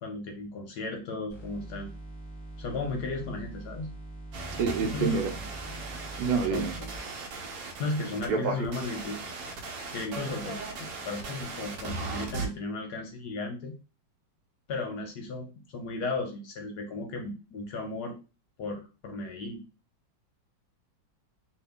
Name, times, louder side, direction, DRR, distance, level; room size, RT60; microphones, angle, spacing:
voice 1, 0.0-1.9 2.6-3.9 4.8-5.2 6.4-6.9 7.8-9.2 9.9-13.7 14.7-18.2 18.6-19.6, left 3 dB, 70° left, 3 dB, 1.1 m, -35 dB
sound 1, 1.3-7.0, right 2 dB, 20° right, 1.0 m, -43 dB
sound 2, 4.3-12.5, right 3 dB, 65° right, 1.1 m, -36 dB
voice 2, 4.6-5.4 6.2-6.7, right 5 dB, 85° right, 7 dB, 1.3 m, -27 dB
2.7 x 2.7 x 3.4 m, 0.32 s
omnidirectional pair, 2.0 m